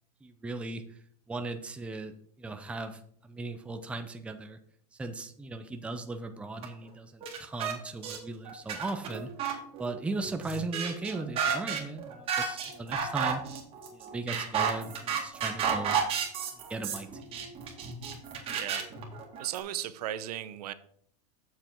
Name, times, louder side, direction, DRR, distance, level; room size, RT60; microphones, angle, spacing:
voice 1, 0.2-0.8 1.3-4.6 5.0-9.3 9.8-13.4 13.9-16.0 16.7-17.4, right 3 dB, 5° right, 6 dB, 0.6 m, -37 dB
sound 1, 6.6-6.7 7.2-7.8 8.0-8.2 8.5-19.6, right 7 dB, 30° right, 2.0 m, -32 dB
voice 2, 18.5-18.9 19.4-20.7, right 12 dB, 80° right, 13 dB, 0.8 m, -36 dB
7.6 x 6.7 x 4.5 m, 0.63 s
supercardioid pair, 155°, 20 cm